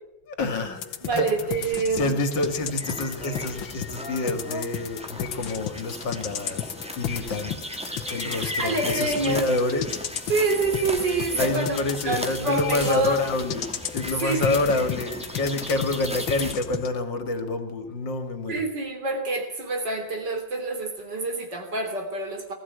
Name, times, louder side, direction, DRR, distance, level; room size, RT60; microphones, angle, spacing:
voice 1, 0.3-7.7 8.1-10.0 11.4-18.6, left 2 dB, 70° left, 8 dB, 2.8 m, -28 dB
sound 1, 0.8-16.9, left 9 dB, 90° left, 1.9 m, -35 dB
voice 2, 1.0-2.2 8.4-9.5 10.3-11.8 12.1-13.2 14.2-14.5 18.5-22.5, right 3 dB, 65° right, 4 dB, 3.9 m, -27 dB
sound 2, 2.4-16.5, equal, 5° right, 1.7 m, -36 dB
19.5 x 14.5 x 9.4 m, 0.86 s
omnidirectional pair, 2.1 m